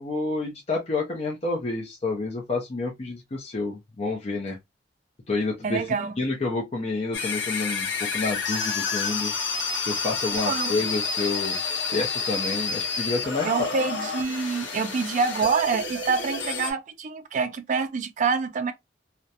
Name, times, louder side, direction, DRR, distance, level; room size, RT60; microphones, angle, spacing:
voice 1, 0.0-4.6 5.3-5.8 6.2-9.3 9.8-11.6 11.9-13.7, left 3 dB, 35° left, 0.5 m, -29 dB
voice 2, 5.6-6.1 10.5-10.7 13.4-18.7, right 5 dB, 40° right, 0.4 m, -26 dB
sound 1, 7.1-16.7, left 5 dB, 80° left, 0.8 m, -29 dB
2.3 x 2.1 x 2.7 m
head